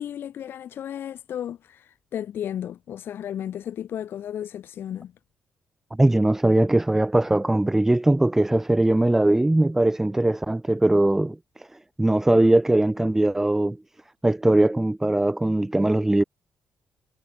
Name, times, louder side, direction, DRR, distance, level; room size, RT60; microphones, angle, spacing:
voice 1, 0.0-5.1, left 10 dB, 70° left, 5.4 m, -34 dB
voice 2, 5.9-11.7 12.0-13.8 14.2-16.2, right 1 dB, 10° right, 0.5 m, -20 dB
cardioid pair, 100°, 4 cm